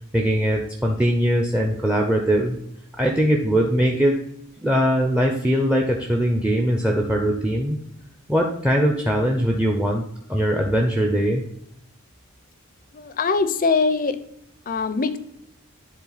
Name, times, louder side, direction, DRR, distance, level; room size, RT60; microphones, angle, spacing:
voice 1, 0.1-2.6 3.0-4.1 4.6-7.8 8.3-10.0 10.3-11.4, equal, 5° right, 2 dB, 0.6 m, -21 dB
voice 2, 12.9-14.2 14.7-15.2, left 4 dB, 40° left, 12 dB, 0.5 m, -22 dB
9.9 x 3.7 x 4.0 m, 0.74 s
head